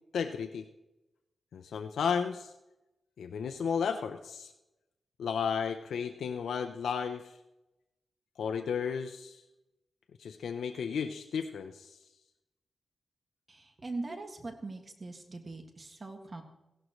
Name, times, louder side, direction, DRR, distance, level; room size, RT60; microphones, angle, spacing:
voice 1, 0.1-0.6 1.5-2.5 3.2-4.5 5.2-7.4 8.4-9.4 10.2-12.0, left 6 dB, 85° left, 7 dB, 0.6 m, -33 dB
voice 2, 13.5-16.4, right 3 dB, 40° right, 5 dB, 1.9 m, -41 dB
16.0 x 11.5 x 3.1 m, 0.95 s
cardioid pair, 65°, 0 cm